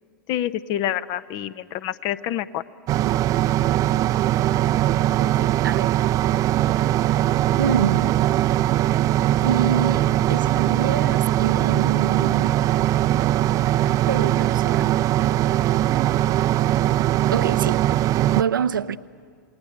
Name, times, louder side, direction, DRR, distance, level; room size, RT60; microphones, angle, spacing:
voice 1, 0.3-2.6, left 12 dB, 40° left, 0.9 m, -27 dB
sound 1, 2.9-18.4, right 13 dB, 30° right, 0.6 m, -20 dB
voice 2, 5.2-6.0 7.6-8.2 9.4-12.6 14.1-14.9 17.3-17.8 18.3-19.0, right 8 dB, 75° right, 0.7 m, -26 dB
28.5 x 19.5 x 8.8 m
hypercardioid pair, 105°, 11 cm